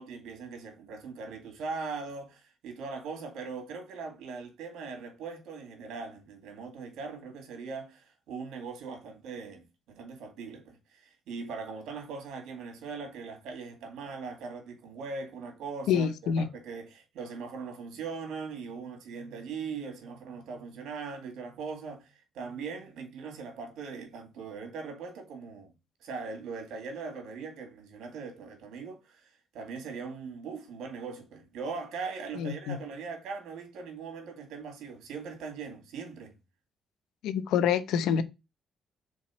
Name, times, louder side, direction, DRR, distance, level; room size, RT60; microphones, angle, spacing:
voice 1, 0.0-25.7 26.0-36.3, right 4 dB, 85° right, 2.1 m, -40 dB
voice 2, 15.9-16.5 32.4-32.8 37.2-38.2, left 8 dB, 90° left, 0.7 m, -26 dB
4.6 x 4.2 x 5.8 m
cardioid pair, 90°, 0 cm